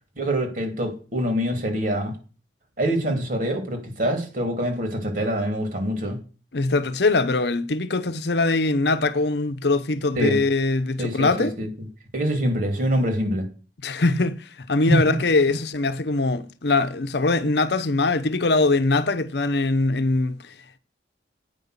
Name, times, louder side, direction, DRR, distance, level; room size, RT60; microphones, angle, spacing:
voice 1, 0.2-2.2 2.8-6.2 10.1-10.4 11.0-11.7 12.1-13.5 14.9-15.2, right 1 dB, 50° right, 2.9 m, -24 dB
voice 2, 6.5-11.5 13.8-20.4, left 3 dB, 65° left, 0.8 m, -22 dB
8.9 x 5.5 x 8.1 m
head